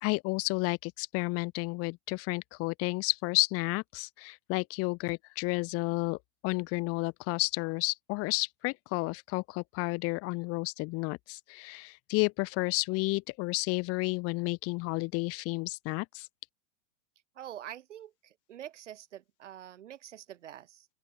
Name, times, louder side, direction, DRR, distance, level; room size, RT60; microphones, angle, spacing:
voice 1, 0.0-16.3, left 25 dB, 40° left, 1.4 m, -31 dB
voice 2, 17.3-20.9, right 11 dB, 70° right, 4.6 m, -46 dB
open air
hypercardioid pair, 105°, 38 cm